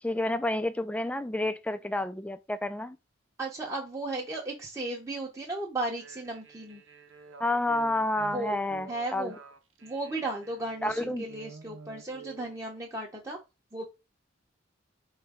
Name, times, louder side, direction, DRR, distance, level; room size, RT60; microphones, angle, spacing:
voice 1, 0.0-3.0 7.4-9.3 10.8-11.3, left 1 dB, 5° left, 0.3 m, -30 dB
voice 2, 3.4-6.8 8.3-8.6 8.9-9.3 9.8-13.4 13.7-13.9, right 2 dB, 15° right, 0.8 m, -35 dB
sound 1, 5.9-12.6, right 5 dB, 75° right, 0.7 m, -49 dB
4.4 x 3.2 x 3.6 m
head